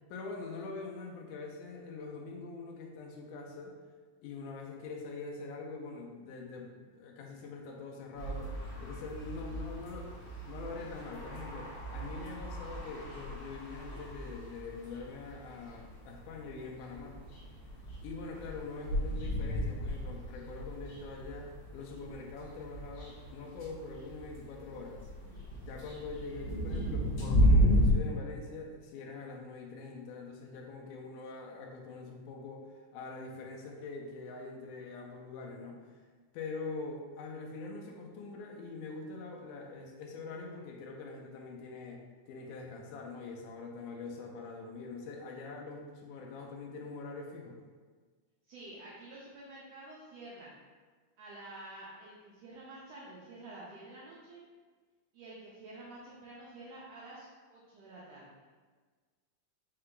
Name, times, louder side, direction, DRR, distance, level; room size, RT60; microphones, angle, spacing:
voice 1, 0.1-3.8 4.2-17.2 18.0-25.1 25.6-35.8 36.3-47.6, left 3 dB, 85° left, 1 dB, 2.1 m, -44 dB
sound 1, 8.2-28.0, equal, 65° left, 1.7 m, -34 dB
voice 2, 48.5-50.5 51.2-54.4 55.1-58.3, right 2 dB, 80° right, -6 dB, 1.5 m, -49 dB
5.4 x 2.2 x 3.7 m, 1.5 s
omnidirectional pair, 3.5 m